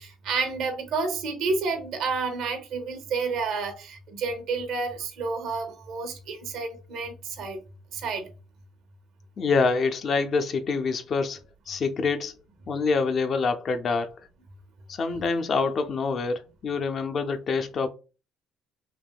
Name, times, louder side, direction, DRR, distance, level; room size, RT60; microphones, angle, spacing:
voice 1, 0.0-7.6 7.9-8.3, right 4 dB, 70° right, 0.8 m, -30 dB
voice 2, 9.4-12.3 12.7-14.1 14.9-17.9, left 4 dB, 50° left, 0.4 m, -26 dB
3.4 x 2.6 x 2.2 m
supercardioid pair, 85°, 0 cm